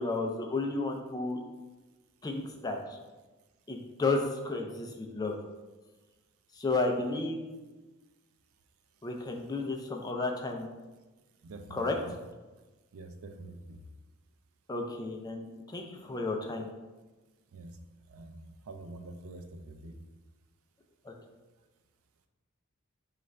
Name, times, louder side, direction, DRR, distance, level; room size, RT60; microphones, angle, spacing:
voice 1, 0.0-1.4 2.2-3.0 3.7-5.4 6.6-7.4 9.0-10.7 11.7-12.0 14.7-16.7 21.1-21.2, left 3 dB, 20° left, 2 dB, 0.3 m, -32 dB
voice 2, 11.4-12.1 12.9-13.8 17.5-17.7 18.1-20.0, right 2 dB, 75° right, 6 dB, 0.4 m, -46 dB
5.0 x 2.4 x 3.2 m, 1.2 s
head